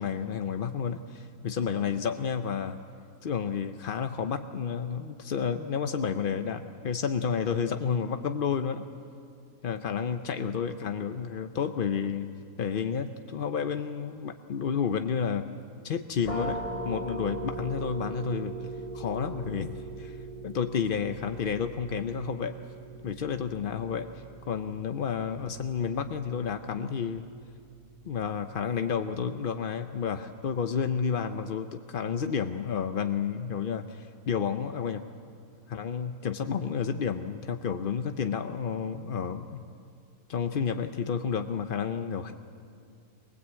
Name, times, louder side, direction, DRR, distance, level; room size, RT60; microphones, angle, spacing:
voice 1, 0.0-2.8 3.2-8.9 9.6-12.3 12.6-15.5 15.8-18.5 18.9-22.6 23.0-27.2 28.0-35.0 35.7-39.6 40.3-42.3, left 6 dB, 60° left, 7 dB, 0.6 m, -31 dB
sound 1, 16.2-27.7, right 2 dB, 80° left, 3.7 m, -40 dB
21.5 x 20.0 x 8.3 m, 2.5 s
omnidirectional pair, 1.7 m